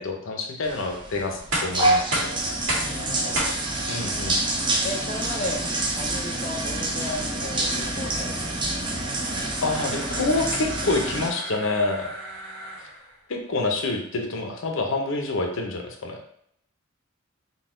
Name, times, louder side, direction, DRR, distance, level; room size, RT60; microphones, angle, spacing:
voice 1, 0.0-2.4 3.9-4.4 9.6-12.1 13.3-16.2, left 2 dB, 70° left, 3 dB, 0.7 m, -27 dB
sound 1, 0.6-11.3, right 2 dB, 25° right, 0.6 m, -27 dB
sound 2, 1.5-13.2, right 1 dB, 90° right, 1.4 m, -35 dB
voice 2, 2.9-3.5 4.8-5.6 5.9-8.6, left 1 dB, 30° left, 0 dB, 0.4 m, -35 dB
3.9 x 2.2 x 3.7 m, 0.70 s
head